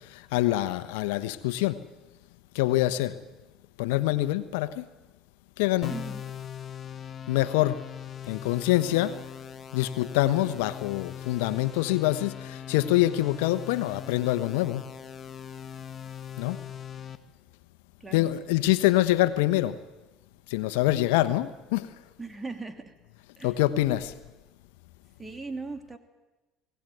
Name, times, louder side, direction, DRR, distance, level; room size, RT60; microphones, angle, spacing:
voice 1, 0.1-1.8 2.5-3.2 3.8-4.9 5.6-5.9 7.3-7.8 8.3-9.1 9.7-14.8 16.4-16.6 18.1-19.8 20.5-21.9 23.4-24.1, left 16 dB, 85° left, 12 dB, 1.1 m, -25 dB
sound 1, 5.8-17.2, left 9 dB, 40° left, 1.4 m, -40 dB
voice 2, 5.9-6.2 18.0-18.3 22.2-22.9 23.4-23.6 25.2-26.0, right 3 dB, 20° right, 7 dB, 2.7 m, -38 dB
21.0 x 17.5 x 9.3 m, 1.1 s
supercardioid pair, 80°, 0 cm